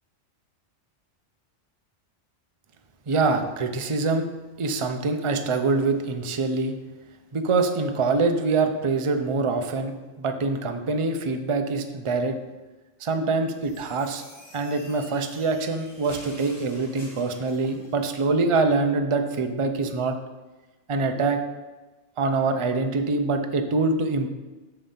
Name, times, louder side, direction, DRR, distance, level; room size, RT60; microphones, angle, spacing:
voice 1, 3.1-4.3 4.6-6.7 7.3-12.3 13.0-14.2 14.5-20.2 20.9-21.4 22.2-24.3, right 3 dB, 35° right, 6 dB, 0.6 m, -24 dB
sound 1, 13.6-18.0, left 1 dB, 35° left, 1.8 m, -47 dB
6.8 x 5.4 x 5.6 m, 1.2 s
omnidirectional pair, 1.3 m